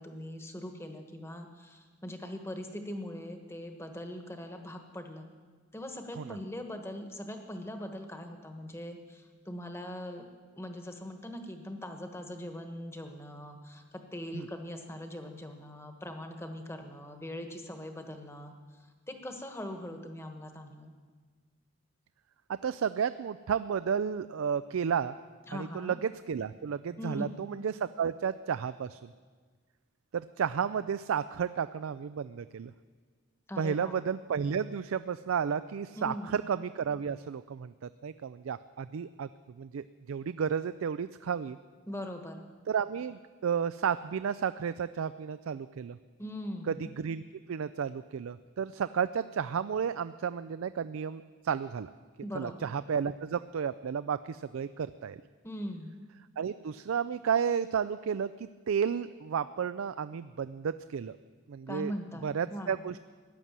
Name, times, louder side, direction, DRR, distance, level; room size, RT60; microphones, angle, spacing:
voice 1, 0.0-5.3 5.7-10.2 10.5-18.5 19.1-20.9 25.5-26.0 27.0-27.4 33.5-34.0 36.0-36.4 41.9-42.4 46.2-46.8 52.2-52.7 55.4-55.9 61.7-62.8, left 1 dB, 10° left, 5 dB, 1.2 m, -41 dB
voice 2, 22.5-25.2 25.5-29.1 30.1-32.7 33.6-39.3 39.6-41.6 42.7-46.0 46.7-47.2 47.5-51.9 52.3-55.2 56.4-61.2 61.5-61.9 62.2-63.0, right 7 dB, 75° right, 14 dB, 0.4 m, -32 dB
16.5 x 11.0 x 7.4 m, 1.5 s
head